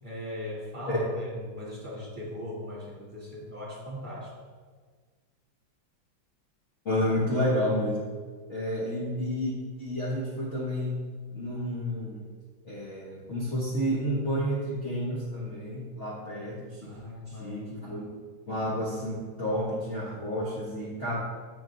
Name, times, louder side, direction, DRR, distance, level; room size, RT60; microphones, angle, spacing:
voice 1, 0.0-4.3 16.8-17.6, left 1 dB, 15° right, -8 dB, 2.0 m, -39 dB
voice 2, 0.9-1.3 6.8-8.0 8.5-11.0 11.3-12.2 12.6-17.0 17.3-18.1 18.5-21.2, equal, 45° left, -6 dB, 1.1 m, -30 dB
9.1 x 5.3 x 2.5 m, 1.5 s
omnidirectional pair, 2.1 m